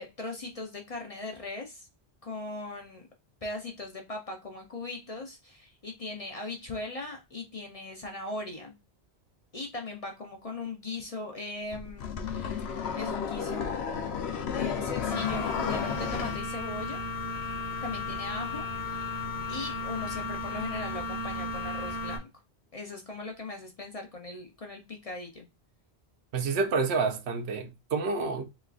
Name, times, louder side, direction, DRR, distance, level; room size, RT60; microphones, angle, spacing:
voice 1, 0.0-1.9 2.2-3.1 3.4-8.7 9.5-14.2 14.5-17.0 17.8-19.2 19.5-22.3 22.7-25.5, left 2 dB, 40° left, 0.6 m, -39 dB
sound 1, 11.7-16.4, left 7 dB, 70° left, 0.9 m, -32 dB
sound 2, 15.1-22.2, left 3 dB, 40° right, 0.8 m, -35 dB
voice 2, 26.3-28.4, right 4 dB, 75° right, 0.9 m, -28 dB
3.6 x 3.0 x 2.4 m
omnidirectional pair, 1.1 m